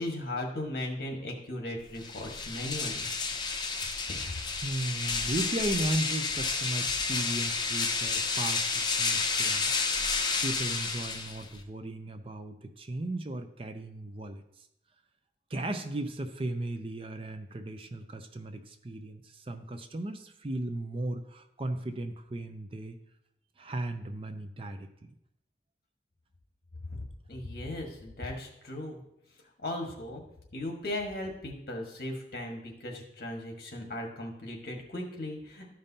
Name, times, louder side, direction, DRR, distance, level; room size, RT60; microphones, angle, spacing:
voice 1, 0.0-3.1 4.1-4.2 26.9-27.0 27.3-29.0 29.6-30.2 30.5-35.7, left 1 dB, 60° left, 1 dB, 1.5 m, -37 dB
sound 1, 1.9-11.6, left 4 dB, 25° left, 0.6 m, -31 dB
voice 2, 4.6-9.9 10.4-14.4 15.5-23.0 23.6-24.9, right 1 dB, 30° right, 7 dB, 0.5 m, -36 dB
13.0 x 5.2 x 2.8 m, 0.79 s
head